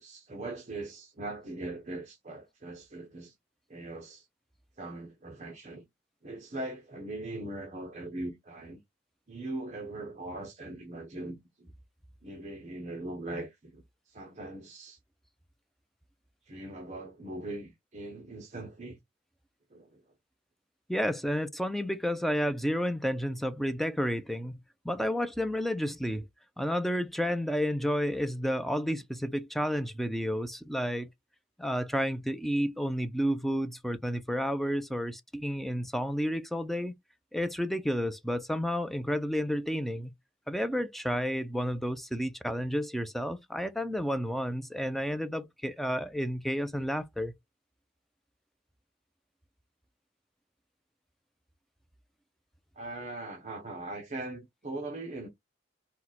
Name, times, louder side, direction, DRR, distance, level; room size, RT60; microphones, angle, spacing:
voice 1, 0.0-3.3 3.7-4.3 4.8-5.8 6.2-8.8 9.3-11.7 12.2-15.0 16.4-19.0 19.7-20.0 52.8-55.3, right 2 dB, 35° right, 0.9 m, -40 dB
voice 2, 20.9-24.6 24.8-26.3 26.6-31.1 31.6-36.9 37.3-40.1 40.5-47.3, equal, ahead, 0.4 m, -31 dB
4.4 x 2.3 x 4.1 m
head